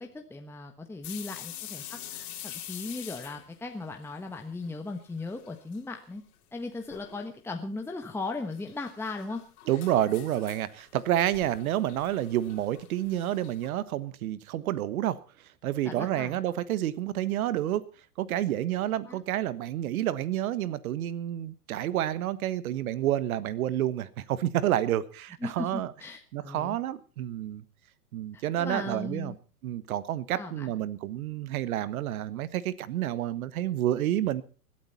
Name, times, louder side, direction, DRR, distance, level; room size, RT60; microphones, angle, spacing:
voice 1, 0.0-6.2 6.5-9.4 15.8-16.4 19.0-19.2 25.4-26.8 28.3-29.4 30.3-30.7, left 3 dB, 5° left, 1.3 m, -37 dB
sound 1, 1.0-4.8 5.1-5.8 6.1-6.2 6.9-7.3 8.3-13.7, left 12 dB, 65° left, 4.0 m, -45 dB
voice 2, 9.7-15.2 15.6-17.8 18.2-25.9 26.3-27.6 28.1-29.3 29.6-34.4, right 12 dB, 65° right, 1.3 m, -29 dB
21.0 x 12.5 x 4.2 m
hypercardioid pair, 115°, 47 cm